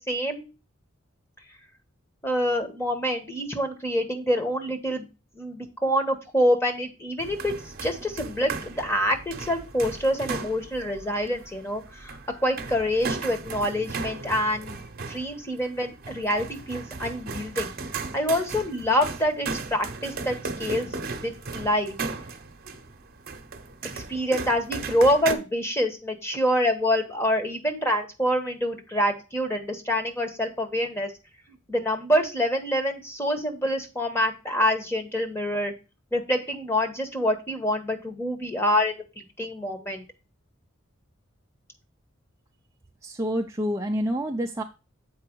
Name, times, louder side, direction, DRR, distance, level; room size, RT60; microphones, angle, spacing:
voice 1, 0.1-0.5 2.2-5.1 5.3-7.5 7.8-14.8 15.1-22.0 23.8-31.1 31.7-35.7 36.1-40.0, equal, 10° left, 4 dB, 1.3 m, -26 dB
sound 1, 7.2-25.3, right 4 dB, 50° right, 0.9 m, -36 dB
voice 2, 43.0-44.6, equal, 15° right, 2 dB, 0.5 m, -27 dB
7.7 x 4.7 x 4.6 m, 0.31 s
head